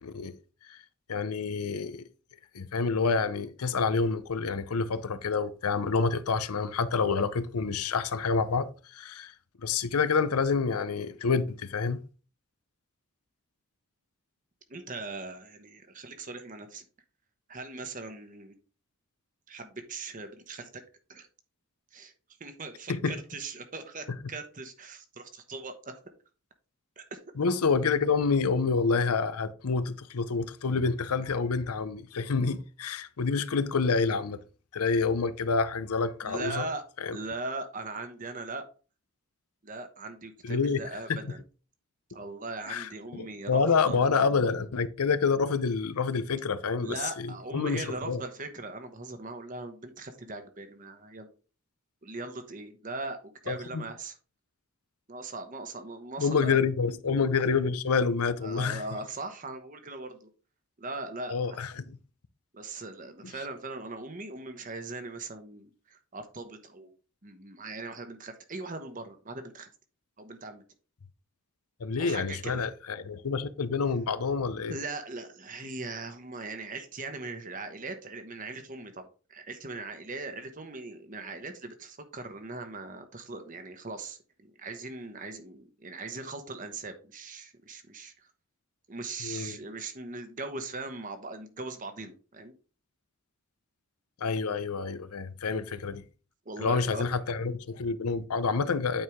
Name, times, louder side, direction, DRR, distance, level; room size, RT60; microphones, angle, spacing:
voice 1, 0.0-0.3 0.7-0.8 1.1-2.0 2.5-9.3 9.6-12.0 22.9-23.2 24.1-24.2 27.4-34.4 34.7-36.7 37.0-37.2 40.4-40.8 41.1-41.3 42.7-48.2 53.5-53.8 56.2-58.8 61.3-62.0 71.8-74.8 89.2-89.6 94.2-96.0 96.6-99.0, left 5 dB, 85° left, 0.6 m, -28 dB
voice 2, 14.7-16.8 17.5-18.6 19.5-20.8 21.1-21.3 21.9-22.1 22.4-26.0 27.0-27.2 36.2-36.8 37.1-38.7 39.6-41.4 42.1-44.0 46.8-51.3 52.0-54.2 55.1-56.6 58.4-60.3 60.8-61.6 62.5-66.9 67.2-69.7 70.2-70.6 72.0-72.6 74.7-88.3 88.9-92.5 96.4-97.0, right 3 dB, 35° right, 1.0 m, -40 dB
8.9 x 4.7 x 3.6 m
head